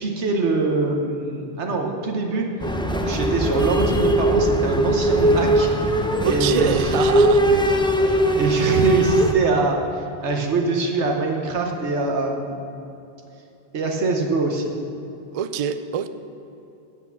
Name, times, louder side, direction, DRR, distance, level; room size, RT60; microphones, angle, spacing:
voice 1, 0.0-2.5 2.9-5.7 6.2-6.9 7.4-7.7 8.0-9.8 10.2-12.6 13.7-14.7, right 3 dB, 85° right, 2 dB, 1.3 m, -23 dB
sound 1, 2.6-9.3, right 1 dB, 5° left, 0.4 m, -20 dB
voice 2, 6.2-7.4 15.3-16.1, right 8 dB, 55° right, 11 dB, 0.4 m, -25 dB
8.4 x 8.0 x 7.1 m, 2.8 s
omnidirectional pair, 1.1 m